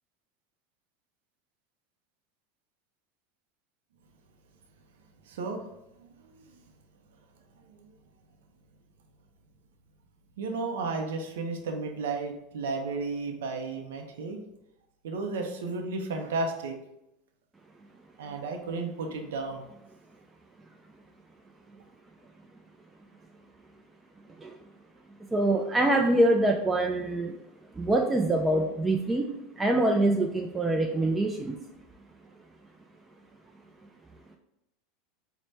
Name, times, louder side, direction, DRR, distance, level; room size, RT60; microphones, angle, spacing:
voice 1, 5.3-5.7 6.0-6.6 7.7-7.9 10.4-14.4 15.0-16.7 18.2-19.6, right 3 dB, 85° right, 4 dB, 0.5 m, -33 dB
voice 2, 25.3-27.3 27.8-29.3 29.6-31.6, right 1 dB, 15° right, 1 dB, 0.3 m, -24 dB
4.1 x 2.1 x 3.2 m, 0.88 s
hypercardioid pair, 105°, 0 cm